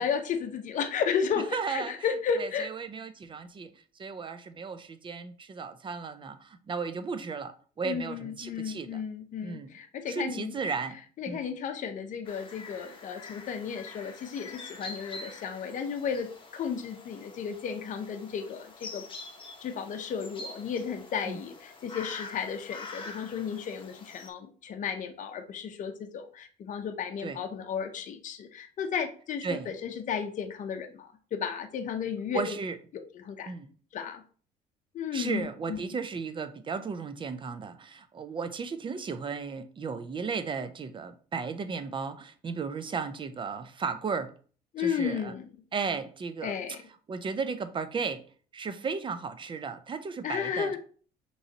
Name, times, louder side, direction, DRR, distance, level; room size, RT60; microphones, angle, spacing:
voice 1, 0.0-2.7 7.8-10.5 11.2-19.0 19.6-32.6 33.1-33.5 33.9-34.2 34.9-35.8 44.7-45.4 46.4-46.8 50.2-50.8, left 7 dB, 50° left, 0.7 m, -33 dB
voice 2, 1.5-1.9 2.4-9.0 9.4-9.7 10.1-11.0 11.3-11.4 21.3-21.4 27.2-27.4 29.4-29.7 32.3-32.8 33.5-33.7 35.1-44.3 44.8-45.3 45.7-46.8 47.1-48.2 48.5-50.8, right 5 dB, 30° right, 0.5 m, -35 dB
sound 1, 12.2-24.3, left 3 dB, 30° left, 1.0 m, -46 dB
5.5 x 3.1 x 2.8 m
cardioid pair, 110°, 17 cm